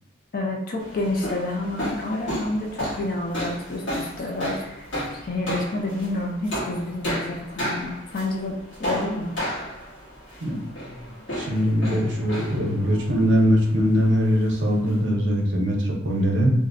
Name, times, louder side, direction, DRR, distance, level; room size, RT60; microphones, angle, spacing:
voice 1, 0.3-4.9 5.2-9.3, left 2 dB, 50° left, 1 dB, 0.4 m, -29 dB
sound 1, 0.8-15.1, equal, 70° left, 1.2 m, -33 dB
voice 2, 11.4-16.5, equal, 65° right, -1 dB, 0.6 m, -21 dB
2.5 x 2.0 x 2.5 m, 0.80 s
head